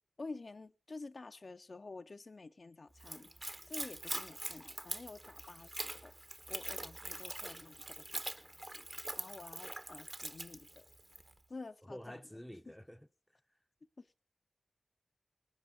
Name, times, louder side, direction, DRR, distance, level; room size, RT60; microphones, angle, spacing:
voice 1, 0.2-3.3 3.6-6.1 6.5-8.9 9.2-10.8 11.5-12.2 12.7-12.8 14.0-14.1, left 3 dB, 60° left, 0.6 m, -50 dB
Splash splatter / Trickle dribble, 3.0-11.3, right 1 dB, 30° right, 1.0 m, -44 dB
voice 2, 11.9-13.1, equal, 5° left, 0.7 m, -49 dB
18.5 x 9.9 x 4.1 m
cardioid pair, 40°, 0 cm